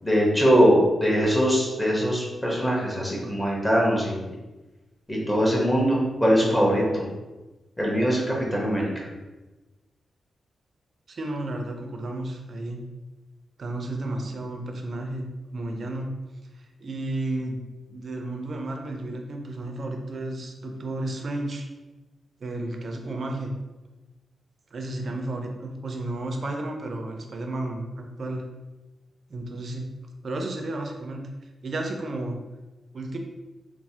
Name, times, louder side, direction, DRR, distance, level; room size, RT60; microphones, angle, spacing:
voice 1, 0.0-4.2 5.1-7.0 7.8-8.8, equal, 15° left, -4 dB, 1.0 m, -22 dB
voice 2, 11.1-12.8 13.6-16.1 16.8-21.7 22.4-23.5 24.7-28.5 29.3-29.8 30.2-31.3 31.6-32.4 32.9-33.2, right 2 dB, 55° right, 3 dB, 0.4 m, -32 dB
3.1 x 2.0 x 2.8 m, 1.1 s
cardioid pair, 80°, 0 cm